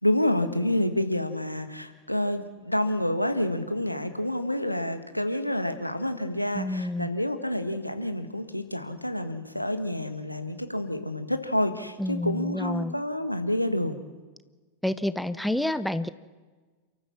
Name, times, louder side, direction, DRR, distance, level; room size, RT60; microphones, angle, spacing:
voice 1, 0.0-14.0, left 1 dB, 90° left, 9 dB, 1.5 m, -28 dB
voice 2, 6.5-7.1 12.0-12.9 14.8-16.1, left 1 dB, ahead, 14 dB, 0.8 m, -28 dB
29.0 x 14.0 x 7.4 m, 1.4 s
figure-of-eight pair, 90°, 0 cm